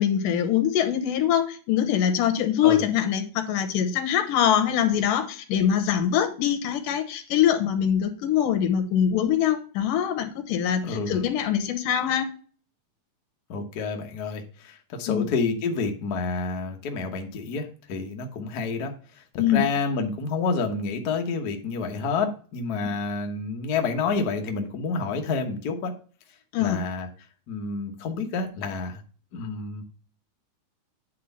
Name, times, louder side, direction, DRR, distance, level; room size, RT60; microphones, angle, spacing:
voice 1, 0.0-12.3 15.1-15.3 19.4-19.7 26.5-26.8, left 9 dB, 90° left, 8 dB, 2.6 m, -23 dB
voice 2, 10.8-11.2 13.5-18.9 19.5-25.9 26.6-27.1 27.5-29.0 29.3-29.8, left 4 dB, 70° left, 3 dB, 0.9 m, -29 dB
9.4 x 3.6 x 5.5 m, 0.40 s
omnidirectional pair, 3.6 m